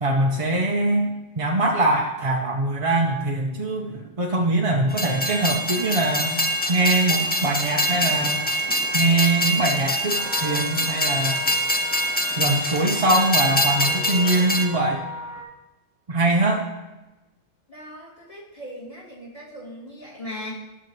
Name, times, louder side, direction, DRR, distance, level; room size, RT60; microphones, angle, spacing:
voice 1, 0.0-8.4 8.9-11.4 12.4-15.0 16.1-16.6, right 2 dB, 35° right, -1 dB, 0.6 m, -22 dB
Train, 4.9-14.7, equal, 15° left, 0.4 m, -24 dB
sound 1, 10.1-15.4, left 4 dB, 85° left, 1.6 m, -38 dB
voice 2, 17.7-20.5, left 1 dB, 30° left, -6 dB, 2.6 m, -38 dB
13.0 x 6.6 x 3.1 m, 1.1 s
omnidirectional pair, 1.2 m